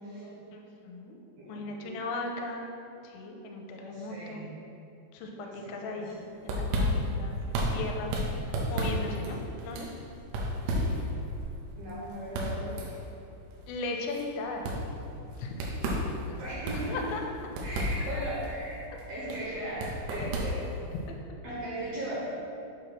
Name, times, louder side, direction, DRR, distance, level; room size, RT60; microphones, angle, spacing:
voice 1, 0.0-0.4 1.4-2.1 3.8-4.4 5.4-6.2 7.7-7.8 11.8-12.7 16.4-17.0 17.6-20.8 21.4-22.3, right 1 dB, 65° right, -8 dB, 2.4 m, -38 dB
voice 2, 0.5-1.2 1.5-2.7 3.0-4.5 5.1-7.4 7.7-8.1 8.7-9.9 13.7-14.7 15.4-15.5 16.9-17.2 19.5-19.6 20.2-20.3, left 3 dB, 85° left, 2 dB, 3.2 m, -37 dB
sound 1, 6.1-21.1, equal, 85° right, 3.3 m, -33 dB
8.2 x 3.0 x 6.3 m, 2.7 s
omnidirectional pair, 5.7 m